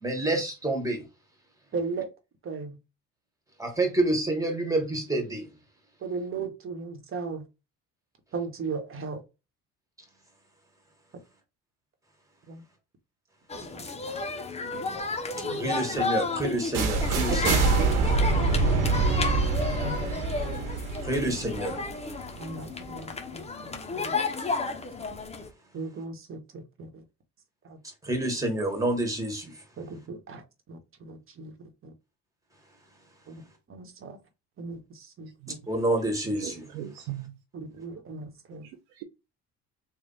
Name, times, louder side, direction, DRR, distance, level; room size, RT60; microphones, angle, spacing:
voice 1, 0.0-1.0 3.6-5.5 15.6-17.6 21.0-21.8 28.0-29.5 35.7-36.6, right 1 dB, 10° right, 1.7 m, -28 dB
voice 2, 1.7-2.1 2.4-2.8 6.0-7.4 8.3-9.2 12.5-12.6 13.5-13.8 15.4-15.8 17.8-17.9 19.8-20.0 22.4-23.4 23.9-24.1 25.7-27.0 27.6-27.8 29.8-31.9 33.3-33.4 33.7-34.2 34.6-35.6 37.8-38.7, right 4 dB, 35° right, 1.2 m, -37 dB
sound 1, 13.5-25.5, left 4 dB, 20° left, 0.7 m, -33 dB
sound 2, 16.7-22.6, right 3 dB, 60° right, 1.2 m, -25 dB
voice 3, 36.3-37.4 38.6-39.0, right 12 dB, 85° right, 0.6 m, -39 dB
3.3 x 2.4 x 4.0 m
supercardioid pair, 85°, 35 cm